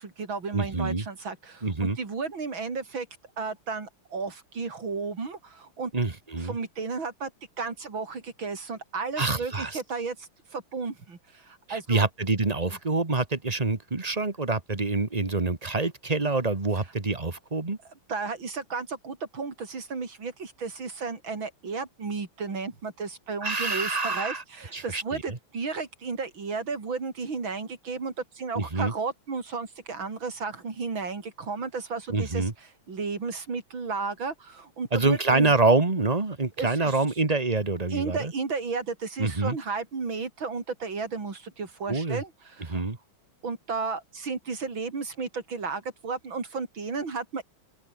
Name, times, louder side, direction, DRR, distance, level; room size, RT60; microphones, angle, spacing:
voice 1, 0.0-3.1 3.4-5.9 6.4-7.3 7.6-12.1 18.1-32.5 32.9-35.5 36.6-37.0 37.9-42.8 43.4-47.4, right 4 dB, 70° right, 4.5 m, -33 dB
voice 2, 0.5-1.0 1.6-2.0 5.9-6.6 9.2-9.8 11.7-17.8 23.4-24.4 24.7-25.4 28.6-28.9 32.1-32.5 34.9-38.3 39.2-39.6 41.9-42.2 42.7-43.0, right 3 dB, 20° right, 1.8 m, -26 dB
open air
omnidirectional pair, 2.2 m